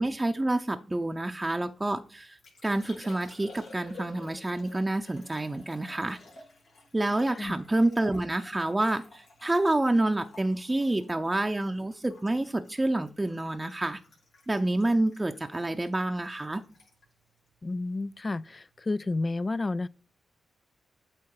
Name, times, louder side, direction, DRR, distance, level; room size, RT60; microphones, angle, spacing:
voice 1, 0.0-6.2 6.9-14.0 14.5-16.6, right 2 dB, 20° right, 0.6 m, -28 dB
Liquid, 1.6-18.3 18.5-19.1, left 3 dB, 85° left, 3.3 m, -54 dB
voice 2, 17.6-19.9, left 2 dB, 35° left, 0.4 m, -31 dB
8.5 x 3.1 x 4.7 m
cardioid pair, 55°, 0 cm